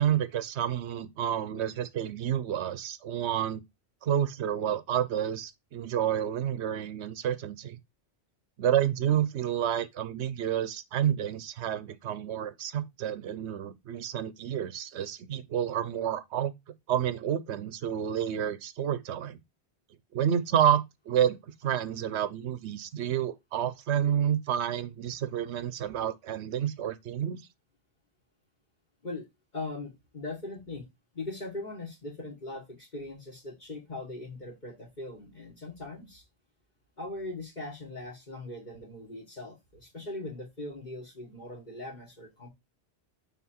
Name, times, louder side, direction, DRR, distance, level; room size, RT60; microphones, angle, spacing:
voice 1, 0.0-3.6 4.0-7.8 8.6-16.5 16.9-19.4 20.1-27.5, right 9 dB, 90° right, 1.0 m, -29 dB
voice 2, 29.5-30.9 31.1-36.2 37.0-42.5, left 2 dB, 45° left, 1.6 m, -40 dB
6.0 x 3.7 x 4.3 m
omnidirectional pair, 1.1 m